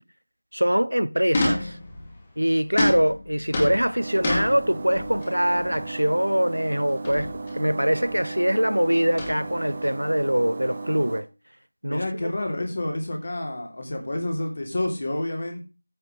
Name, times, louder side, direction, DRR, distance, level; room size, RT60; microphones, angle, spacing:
voice 1, 0.5-1.8 2.4-11.3 11.8-12.3, equal, 85° right, 0.7 m, -23 dB
sound 1, 1.3-2.2 2.8-5.3 5.6-5.9 7.0-7.6 7.9-8.2 9.1-9.9, left 1 dB, 20° left, 2.2 m, -28 dB
sound 2, 4.0-11.2, right 3 dB, 30° right, 1.2 m, -35 dB
voice 2, 11.9-15.6, left 1 dB, 45° left, 3.1 m, -29 dB
14.5 x 6.6 x 3.3 m
figure-of-eight pair, 170°, 0 cm